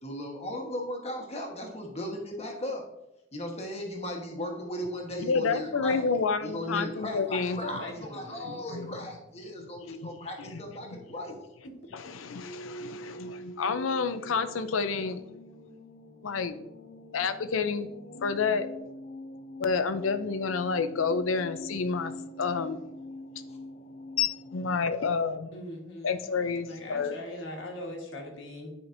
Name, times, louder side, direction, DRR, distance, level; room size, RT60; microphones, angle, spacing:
voice 1, 0.0-2.8 3.3-6.0 6.4-11.4 23.5-23.6, left 1 dB, 30° left, 1 dB, 1.3 m, -37 dB
voice 2, 5.2-7.6 8.5-8.9 9.9-10.1 10.5-10.6 10.9-11.0 11.9-15.2 16.2-16.6 17.1-17.9 18.2-18.7 19.6-22.8 24.2-25.5 26.0-27.1, left 5 dB, 90° left, 11 dB, 0.5 m, -29 dB
voice 3, 7.6-9.0 12.0-12.1 25.5-26.2 26.6-28.7, left 1 dB, 70° left, 1 dB, 1.5 m, -41 dB
sound 1, 12.4-24.9, equal, 45° left, 0.6 m, -45 dB
9.8 x 5.1 x 2.6 m, 0.91 s
head